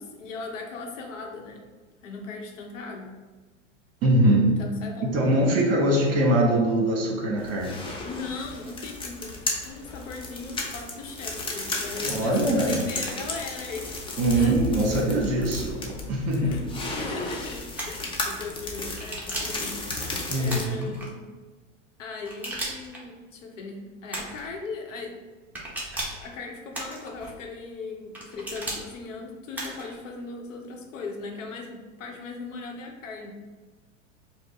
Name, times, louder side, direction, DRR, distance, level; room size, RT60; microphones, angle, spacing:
voice 1, 0.0-1.6 2.0-3.1 4.4-5.2 8.0-14.0 14.3-14.5 15.5-15.6 16.4-21.2 22.0-25.1 26.1-33.3, left 4 dB, 75° left, 2 dB, 0.9 m, -38 dB
voice 2, 4.0-4.5 5.0-7.8 12.0-12.8 14.2-16.5 20.3-20.9, right 1 dB, 40° right, -1 dB, 1.3 m, -22 dB
sound 1, 7.4-20.7, left 2 dB, 15° left, 0.6 m, -34 dB
sound 2, 17.8-18.1 19.0-19.6 20.5-21.1 22.2-23.0 24.1-24.5 25.5-26.2 26.7-27.3 28.1-28.8 29.5-29.9, right 1 dB, 5° right, 0.9 m, -35 dB
4.8 x 2.1 x 3.4 m, 1.4 s
hypercardioid pair, 105°, 38 cm